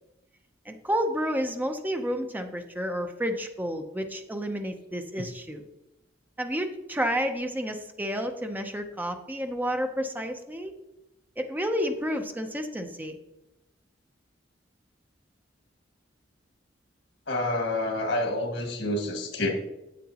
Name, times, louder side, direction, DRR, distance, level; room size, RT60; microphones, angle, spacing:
voice 1, 0.7-5.6 6.4-10.7 11.4-13.2, equal, 10° right, 5 dB, 0.6 m, -30 dB
voice 2, 17.3-19.5, left 1 dB, 75° left, 3 dB, 1.7 m, -28 dB
9.3 x 8.4 x 2.9 m, 0.93 s
head